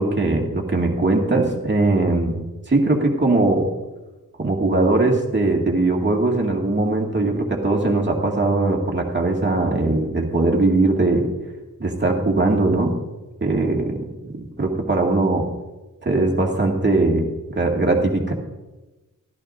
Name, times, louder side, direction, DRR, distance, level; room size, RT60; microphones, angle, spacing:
voice 1, 0.0-2.4 2.7-3.7 4.4-11.3 11.8-12.9 13.4-15.5 16.0-18.3, right 2 dB, 35° right, 0 dB, 2.2 m, -20 dB
15.0 x 13.0 x 2.7 m, 1.1 s
wide cardioid pair, 95°, 33 cm